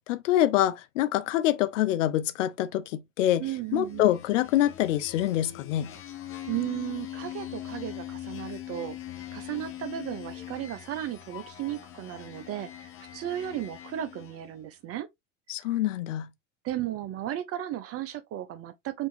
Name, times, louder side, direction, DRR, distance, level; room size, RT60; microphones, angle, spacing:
voice 1, 0.0-3.4 3.7-5.9 15.5-16.3, left 13 dB, 70° left, 0.5 m, -25 dB
voice 2, 3.4-4.1 6.5-9.0 9.3-15.1 16.6-19.1, right 12 dB, 35° right, 0.7 m, -35 dB
sound 1, 3.7-14.5, left 12 dB, 35° left, 0.9 m, -42 dB
4.4 x 2.7 x 2.5 m
figure-of-eight pair, 75°, 39 cm